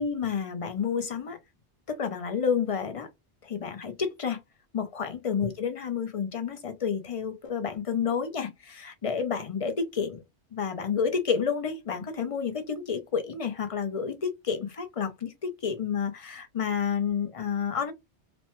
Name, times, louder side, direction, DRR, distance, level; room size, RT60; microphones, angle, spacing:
voice 1, 0.0-1.4 1.9-3.1 3.4-4.4 4.7-10.2 10.5-17.9, left 6 dB, 40° left, 0.5 m, -30 dB
3.1 x 2.1 x 2.9 m
omnidirectional pair, 1.2 m